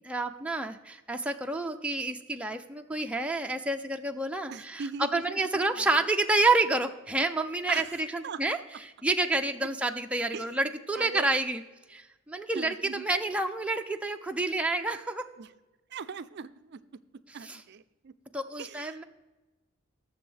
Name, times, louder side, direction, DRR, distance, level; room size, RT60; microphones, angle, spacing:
voice 1, 0.0-8.6 9.0-11.6 11.9-15.3 17.4-17.6 18.3-19.0, right 2 dB, 5° right, 4 dB, 0.5 m, -29 dB
voice 2, 4.5-6.1 7.7-8.0 8.2-8.6 10.3-10.4 11.0-11.3 12.6-13.1 15.4-15.5 15.9-16.8 17.3-18.1 18.6-19.0, right 6 dB, 55° right, 15 dB, 0.5 m, -40 dB
18.0 x 7.0 x 3.3 m, 1.1 s
head